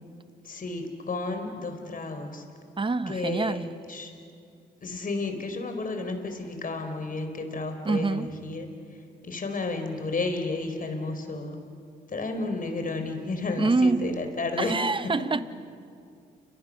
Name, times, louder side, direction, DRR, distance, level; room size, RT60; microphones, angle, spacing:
voice 1, 0.4-2.4 3.1-4.1 4.8-11.6 12.1-14.8 15.0-15.1, left 3 dB, 45° left, 4.7 m, -32 dB
voice 2, 2.8-3.7 7.8-8.3 13.6-14.2 14.6-15.4, right 3 dB, 25° right, 1.2 m, -25 dB
29.5 x 25.0 x 6.7 m
supercardioid pair, 55°, 19 cm